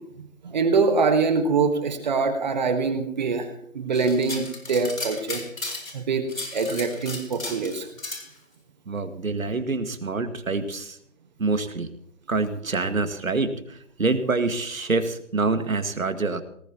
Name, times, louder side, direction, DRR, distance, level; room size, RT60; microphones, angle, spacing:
voice 1, 0.4-3.5 3.7-5.4 5.9-6.3 6.5-7.9, right 4 dB, 35° right, 6 dB, 1.4 m, -24 dB
sound 1, 3.9-6.0 6.3-8.3, left 2 dB, 85° left, 4.4 m, -35 dB
voice 2, 8.9-11.0 11.4-11.9 12.3-16.4, right 3 dB, 85° right, 8 dB, 2.0 m, -26 dB
18.5 x 17.5 x 2.9 m, 0.68 s
figure-of-eight pair, 160°, 40 cm